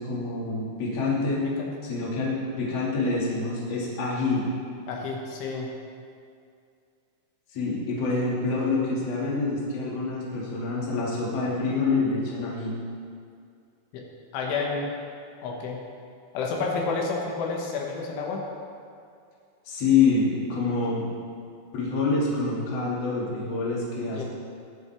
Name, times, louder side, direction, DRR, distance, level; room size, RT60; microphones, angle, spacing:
voice 1, 0.0-1.4 1.8-2.3 2.6-4.4 7.5-12.8 19.6-21.0 21.7-24.2, left 4 dB, 40° left, -6 dB, 3.2 m, -26 dB
voice 2, 4.9-5.7 13.9-14.0 14.3-14.9 15.4-15.8 16.3-18.5 24.1-24.2, left 4 dB, 80° left, -1 dB, 3.8 m, -30 dB
20.5 x 7.2 x 4.5 m, 2.3 s
omnidirectional pair, 5.4 m